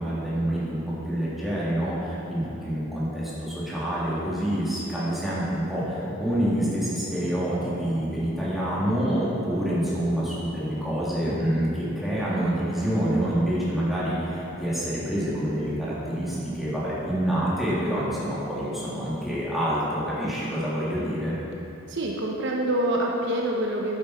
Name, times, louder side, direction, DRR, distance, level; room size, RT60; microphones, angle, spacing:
voice 1, 0.0-21.3, equal, ahead, -9 dB, 2.6 m, -27 dB
sound 1, 5.8-17.6, left 1 dB, 15° left, 0.8 m, -42 dB
voice 2, 21.9-24.0, right 1 dB, 60° right, -1 dB, 0.9 m, -26 dB
11.0 x 9.0 x 4.3 m, 2.9 s
head